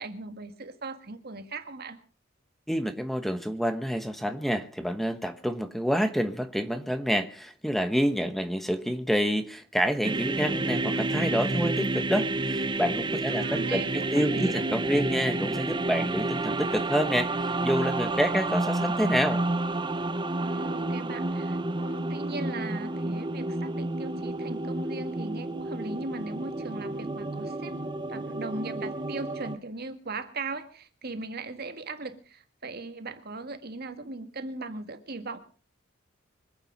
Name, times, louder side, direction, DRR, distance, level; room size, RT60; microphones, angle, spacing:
voice 1, 0.0-2.0 13.3-14.6 20.4-35.4, right 3 dB, 55° right, 9 dB, 1.8 m, -38 dB
voice 2, 2.7-17.3 17.6-19.4, equal, ahead, 8 dB, 1.1 m, -28 dB
sound 1, 10.0-29.6, right 2 dB, 25° right, 0.8 m, -30 dB
25.0 x 8.8 x 5.3 m, 0.40 s
head